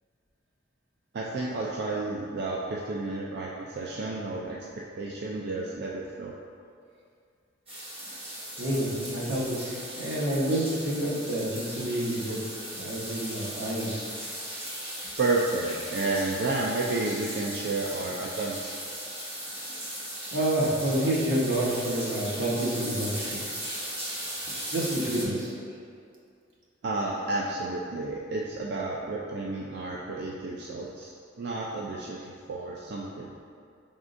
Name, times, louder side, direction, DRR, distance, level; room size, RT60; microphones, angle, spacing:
voice 1, 1.1-4.6 5.0-6.3 15.2-18.7 26.8-31.1 31.4-33.3, right 2 dB, 60° right, -3 dB, 0.4 m, -31 dB
sound 1, 7.7-25.2, right 1 dB, 30° right, 1.0 m, -37 dB
voice 2, 8.6-13.9 15.0-15.1 20.3-23.4 24.7-25.5, right 1 dB, 90° right, -6 dB, 1.1 m, -28 dB
5.1 x 3.6 x 2.5 m, 2.3 s
head